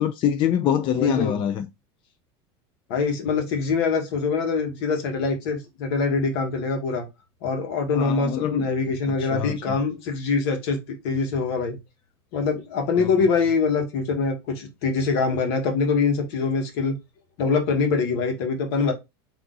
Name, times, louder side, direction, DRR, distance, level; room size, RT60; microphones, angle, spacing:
voice 1, 0.0-1.7 7.9-8.7 9.1-9.7 13.0-13.1, left 9 dB, 40° left, 0.4 m, -25 dB
voice 2, 0.9-1.4 2.9-7.1 7.4-10.8 11.0-11.8 12.3-16.9 17.4-18.9, left 4 dB, 70° left, 1.4 m, -24 dB
3.5 x 2.7 x 3.8 m
supercardioid pair, 130°, 14 cm